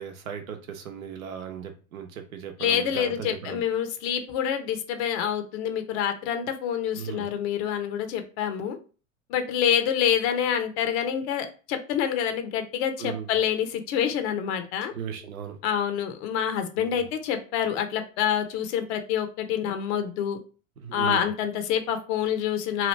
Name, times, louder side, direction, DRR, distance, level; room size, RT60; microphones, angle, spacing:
voice 1, 0.0-3.6 6.9-7.3 13.0-13.3 14.9-15.6 16.8-17.0 20.8-21.3, right 8 dB, 80° right, 6 dB, 0.8 m, -37 dB
voice 2, 2.6-8.8 9.3-14.9 15.6-20.4 20.9-22.9, left 9 dB, 55° left, 8 dB, 0.8 m, -27 dB
3.0 x 2.4 x 3.1 m, 0.36 s
hypercardioid pair, 90°, 41 cm